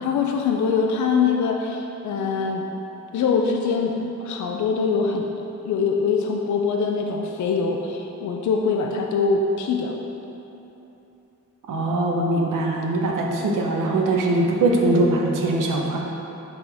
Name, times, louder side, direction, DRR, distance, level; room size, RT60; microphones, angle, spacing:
voice 1, 0.0-2.7 3.1-5.3 5.7-9.9, left 5 dB, 65° left, 1 dB, 0.6 m, -23 dB
voice 2, 11.7-16.0, right 2 dB, 80° right, 0 dB, 1.0 m, -21 dB
10.5 x 3.9 x 3.5 m, 3.0 s
wide cardioid pair, 125°, 31 cm